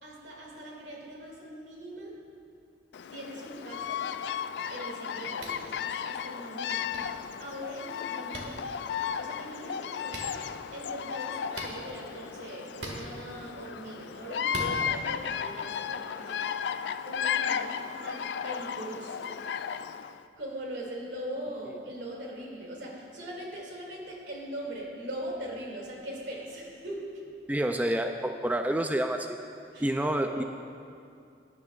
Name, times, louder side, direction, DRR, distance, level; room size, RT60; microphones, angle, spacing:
voice 1, 0.0-2.1 3.1-4.1 4.7-7.0 7.4-8.6 9.2-10.3 10.7-16.5 17.1-19.7 20.4-27.3 29.7-29.9 30.3-30.4, right 1 dB, 80° right, -3 dB, 2.4 m, -41 dB
Bird vocalization bird call bird song, 2.9-20.2, left 7 dB, 70° left, 0.3 m, -34 dB
sound 1, 5.4-5.6 6.9-7.0 8.3-8.5 10.1-10.3 11.5-11.7 12.8-13.0 14.5-14.7, right 2 dB, 65° right, 1.8 m, -38 dB
voice 2, 27.5-29.4 29.8-30.4, right 1 dB, 10° right, 5 dB, 0.3 m, -28 dB
17.5 x 10.5 x 2.4 m, 2.5 s
head